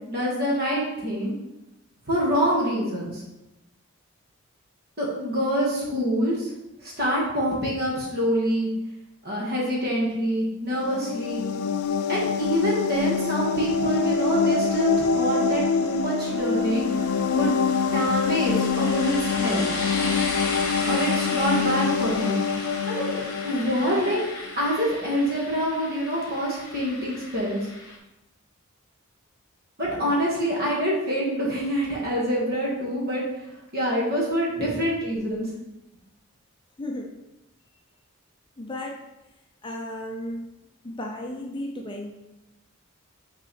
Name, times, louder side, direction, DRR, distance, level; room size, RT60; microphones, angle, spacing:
voice 1, 0.1-1.3 2.1-3.2 5.0-6.5 6.8-8.7 9.2-11.4 12.1-16.9 17.3-17.5 17.9-19.7 20.9-22.4 22.9-24.2 24.6-27.6 29.8-33.2 33.7-35.5, equal, 45° right, -4 dB, 2.0 m, -26 dB
sound 1, 10.7-24.3, left 5 dB, 75° left, 0.4 m, -25 dB
sound 2, 13.0-28.0, left 2 dB, 45° left, 1.5 m, -36 dB
voice 2, 36.8-37.1 38.6-39.0 39.6-40.5 40.8-42.1, left 1 dB, 20° left, 1 dB, 0.5 m, -34 dB
6.0 x 4.7 x 4.3 m, 0.95 s
head